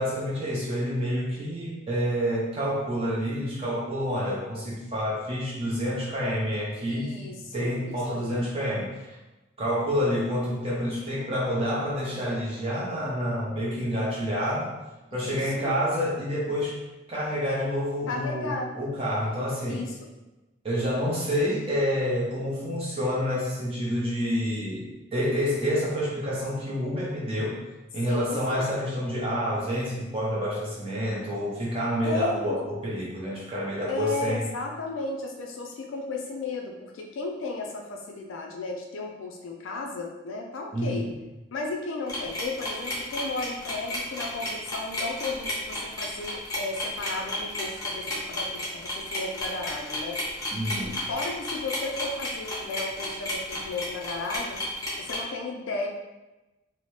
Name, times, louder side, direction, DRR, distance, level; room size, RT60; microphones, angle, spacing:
voice 1, 0.0-7.2 7.5-9.2 9.6-14.7 15.1-16.8 17.1-19.8 20.6-27.6 27.9-34.5 40.7-41.0 50.5-51.0, equal, 30° right, -7 dB, 0.6 m, -28 dB
voice 2, 6.9-8.4 15.1-15.7 18.1-18.7 19.7-20.0 28.1-28.6 32.0-32.6 33.9-41.1 41.5-50.2 50.6-54.6 55.0-55.9, left 3 dB, 80° left, 1 dB, 0.4 m, -34 dB
sound 1, 42.1-55.2, left 1 dB, 15° left, 0.6 m, -32 dB
2.8 x 2.0 x 3.1 m, 1.1 s
head